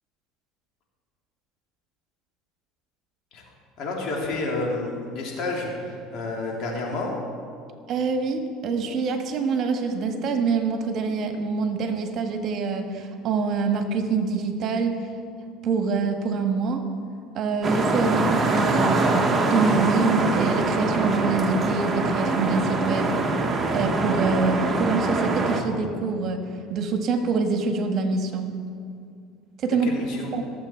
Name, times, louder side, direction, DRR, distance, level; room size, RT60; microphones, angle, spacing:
voice 1, 3.8-7.1 29.8-30.3, left 2 dB, 55° left, -2 dB, 3.1 m, -30 dB
voice 2, 7.9-15.0 15.6-16.8 17.3-23.1 23.7-28.5 29.6-30.4, right 4 dB, 50° right, 5 dB, 1.4 m, -25 dB
sound 1, 17.6-25.6, right 2 dB, 25° right, 1.3 m, -23 dB
18.5 x 7.3 x 4.5 m, 2.3 s
supercardioid pair, 100°, 0 cm